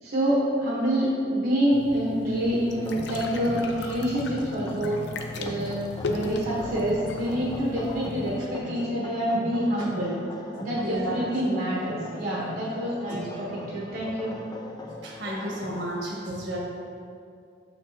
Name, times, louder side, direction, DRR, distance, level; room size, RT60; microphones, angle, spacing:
voice 1, 0.0-5.0 5.4-5.8 6.1-10.2 10.6-14.3, equal, 55° right, -6 dB, 1.0 m, -27 dB
sound 1, 1.7-8.4, left 2 dB, 70° left, 0.5 m, -36 dB
sound 2, 2.7-15.9, left 1 dB, 25° left, 0.5 m, -40 dB
voice 2, 10.8-11.2 13.1-13.4 15.0-16.6, right 1 dB, 70° right, -3 dB, 1.3 m, -33 dB
6.7 x 6.0 x 2.7 m, 2.4 s
head